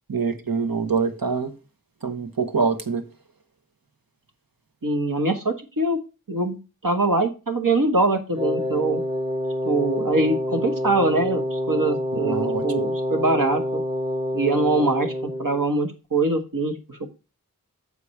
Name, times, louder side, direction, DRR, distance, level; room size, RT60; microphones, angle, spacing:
voice 1, 0.1-1.5 2.0-3.1 12.1-12.6, right 5 dB, 90° right, 1.1 m, -25 dB
voice 2, 4.8-6.0 6.3-9.0 9.6-13.8 14.3-17.1, right 2 dB, 70° right, 1.5 m, -23 dB
Wind instrument woodwind instrument, 8.3-15.7, left 1 dB, 15° right, 0.8 m, -27 dB
6.9 x 4.9 x 5.7 m
wide cardioid pair, 45°, 34 cm